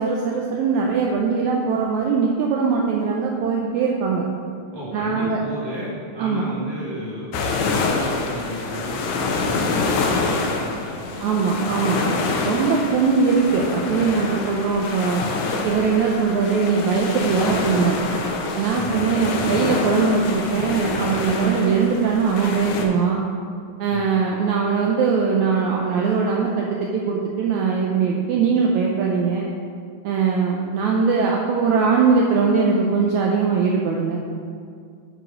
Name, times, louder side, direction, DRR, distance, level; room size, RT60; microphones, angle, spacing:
voice 1, 0.0-4.3 4.9-5.4 6.2-6.4 11.2-12.0 12.4-15.2 15.6-18.1 18.6-23.2 23.8-29.5 30.0-34.2, right 5 dB, 85° right, -1 dB, 1.6 m, -21 dB
voice 2, 4.7-7.3 7.8-11.8 18.7-18.9 23.9-24.0, equal, 30° left, -9 dB, 0.4 m, -34 dB
sound 1, 7.3-22.8, left 3 dB, 75° left, 1.9 m, -26 dB
9.1 x 4.1 x 5.0 m, 2.2 s
omnidirectional pair, 3.9 m